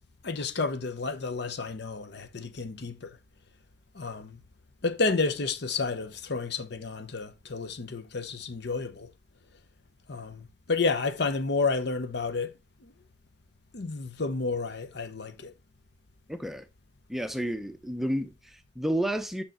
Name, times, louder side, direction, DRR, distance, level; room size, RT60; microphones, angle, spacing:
voice 1, 0.2-3.2 3.9-4.4 4.8-9.1 10.1-12.5 12.8-12.9 13.7-15.5, left 4 dB, 65° left, 0.8 m, -31 dB
voice 2, 16.3-16.7 17.1-19.4, right 1 dB, ahead, 0.6 m, -31 dB
6.6 x 5.7 x 3.7 m
head